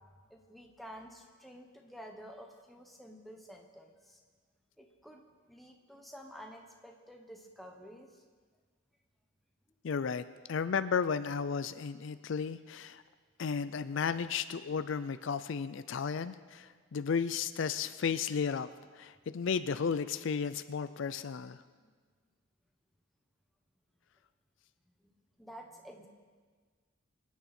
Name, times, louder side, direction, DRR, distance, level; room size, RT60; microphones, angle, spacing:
voice 1, 0.3-4.2 4.8-8.2 21.8-21.9 25.0-25.1 25.4-26.1, equal, ahead, 1 dB, 1.2 m, -51 dB
voice 2, 9.8-10.2 10.5-13.0 13.4-18.7 18.9-21.6, left 6 dB, 60° left, 13 dB, 0.4 m, -33 dB
25.5 x 9.7 x 4.3 m, 1.5 s
head